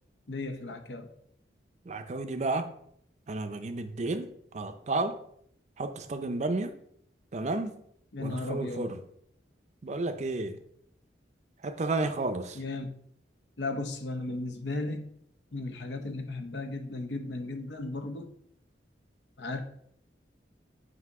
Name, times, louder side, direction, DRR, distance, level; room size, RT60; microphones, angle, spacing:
voice 1, 0.3-1.1 8.1-8.9 12.5-12.9 13.6-15.1 15.5-18.3 19.4-19.6, left 2 dB, 75° left, 0.8 m, -35 dB
voice 2, 1.9-2.7 3.3-5.2 5.8-6.8 7.3-7.8 8.2-9.0 9.8-10.6 11.6-12.6, right 2 dB, 40° right, 0.5 m, -32 dB
8.0 x 2.7 x 4.7 m
head